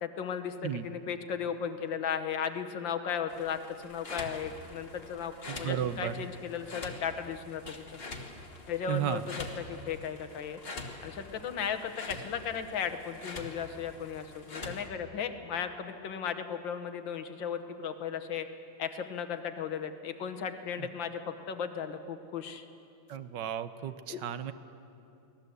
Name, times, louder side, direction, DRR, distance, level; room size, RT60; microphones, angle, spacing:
voice 1, 0.0-5.3 5.6-7.8 8.7-10.6 11.0-18.5 18.8-22.7 24.1-24.2, left 7 dB, 65° left, 8 dB, 1.7 m, -36 dB
sound 1, 3.3-14.9, left 3 dB, 30° left, 1.4 m, -45 dB
voice 2, 5.5-6.1 8.9-9.2 20.8-20.9 23.1-24.5, right 10 dB, 65° right, 12 dB, 1.3 m, -33 dB
23.5 x 18.0 x 8.0 m, 2.7 s
omnidirectional pair, 2.4 m